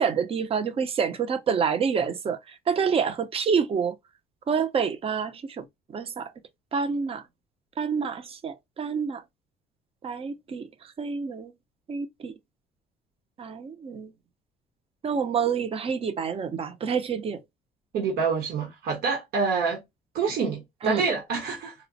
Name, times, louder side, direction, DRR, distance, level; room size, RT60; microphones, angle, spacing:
voice 1, 0.0-2.4 2.7-3.9 4.5-5.6 5.9-6.3 6.7-7.2 7.8-9.2 10.0-10.7 11.0-11.5 11.9-12.3 13.4-14.1 15.0-17.4 20.8-21.0, right 6 dB, 35° right, 0.5 m, -27 dB
voice 2, 17.9-19.8 20.1-21.7, right 5 dB, 65° right, 1.1 m, -27 dB
4.1 x 2.0 x 2.6 m
cardioid pair, 110°, 17 cm